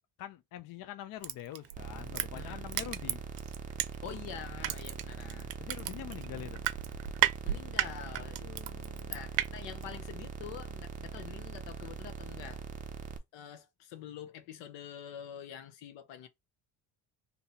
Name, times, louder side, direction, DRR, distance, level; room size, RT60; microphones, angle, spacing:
voice 1, 0.2-3.2 5.6-6.6 8.4-9.2, left 12 dB, 50° left, 0.5 m, -45 dB
Crushing, 1.2-4.2 4.6-9.5 9.8-9.9, right 14 dB, 85° right, 0.6 m, -33 dB
sound 1, 1.7-13.2, right 5 dB, 20° right, 0.4 m, -42 dB
voice 2, 2.3-2.7 4.0-5.5 7.4-8.5 9.1-12.6 13.3-16.3, left 9 dB, 85° left, 0.8 m, -46 dB
2.7 x 2.7 x 4.0 m
cardioid pair, 125°, 43 cm